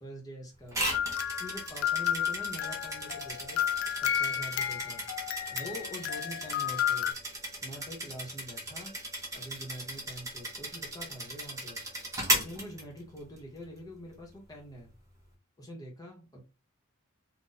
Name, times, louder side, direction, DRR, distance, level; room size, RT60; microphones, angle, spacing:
voice 1, 0.0-0.8 1.4-5.2 5.5-7.1 7.6-8.9 9.3-11.8 12.3-14.9 15.6-16.4, equal, 15° left, -1 dB, 0.9 m, -45 dB
sound 1, 0.7-13.4, right 1 dB, 15° right, 0.7 m, -36 dB
sound 2, 0.9-7.1, left 10 dB, 65° left, 0.3 m, -32 dB
2.6 x 2.2 x 4.0 m, 0.30 s
head